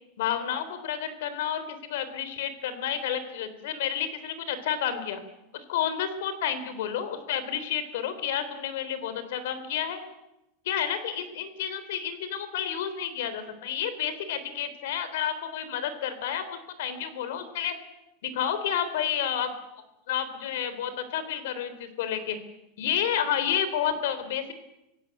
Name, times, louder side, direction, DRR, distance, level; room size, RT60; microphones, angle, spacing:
voice 1, 0.2-5.2 5.5-10.0 10.6-17.7 18.2-19.5 20.1-22.4 22.8-24.5, left 9 dB, 75° left, 12 dB, 3.5 m, -30 dB
26.0 x 16.5 x 8.4 m, 0.90 s
supercardioid pair, 160°, 0 cm